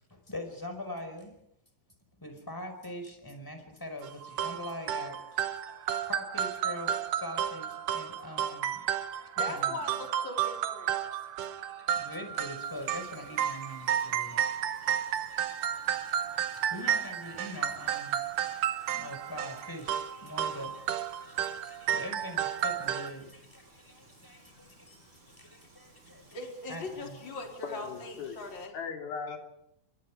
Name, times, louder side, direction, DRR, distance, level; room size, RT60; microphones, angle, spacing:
voice 1, 0.0-1.3 2.2-9.8 11.0-26.4 26.7-27.2, left 1 dB, 5° left, 4.8 m, -44 dB
sound 1, 4.0-23.1, right 9 dB, 70° right, 2.5 m, -32 dB
voice 2, 9.4-11.0 26.3-28.7, left 3 dB, 30° left, 4.9 m, -40 dB
Frying (food), 12.6-28.7, right 2 dB, 35° right, 6.1 m, -59 dB
voice 3, 27.6-28.4 28.7-29.4, left 5 dB, 90° left, 4.9 m, -38 dB
30.0 x 24.0 x 5.0 m
omnidirectional pair, 4.2 m